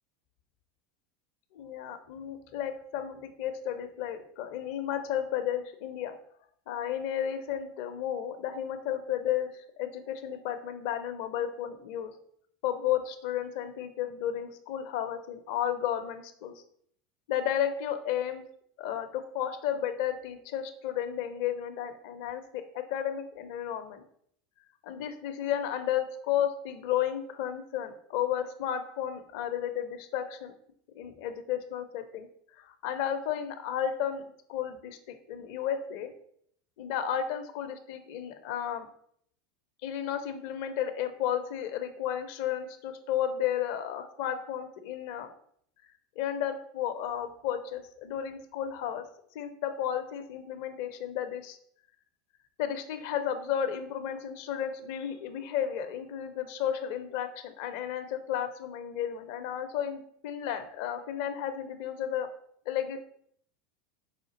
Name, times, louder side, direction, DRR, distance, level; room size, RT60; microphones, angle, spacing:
voice 1, 1.5-6.2 6.7-12.1 12.6-16.5 17.3-18.4 18.8-24.0 24.8-30.5 30.9-32.3 32.6-36.1 36.8-38.9 39.8-45.3 46.2-49.1 49.3-51.6 52.6-62.3 62.7-63.0, left 10 dB, 65° left, 9 dB, 0.5 m, -33 dB
5.0 x 2.4 x 3.9 m, 0.66 s
hypercardioid pair, 90°, 0 cm